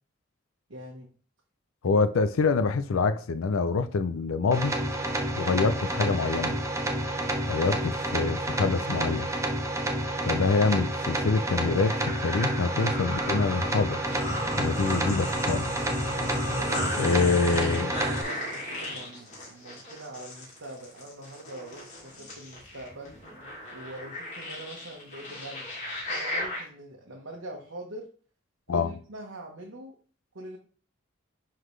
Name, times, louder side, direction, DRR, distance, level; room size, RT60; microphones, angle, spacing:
voice 1, 0.7-1.1 16.0-17.1 18.1-23.2 23.7-25.7 26.1-28.1 28.7-30.0 30.3-30.6, right 1 dB, 75° right, 1.2 m, -43 dB
voice 2, 1.8-4.8 5.4-6.6 7.5-9.3 10.2-14.0 14.6-15.7 17.0-17.9 28.7-28.9, left 4 dB, 85° left, 0.5 m, -26 dB
sound 1, 4.5-18.2, right 1 dB, 15° right, 0.6 m, -29 dB
sound 2, 11.7-26.6, left 1 dB, 35° left, 2.8 m, -36 dB
9.9 x 3.9 x 3.2 m
head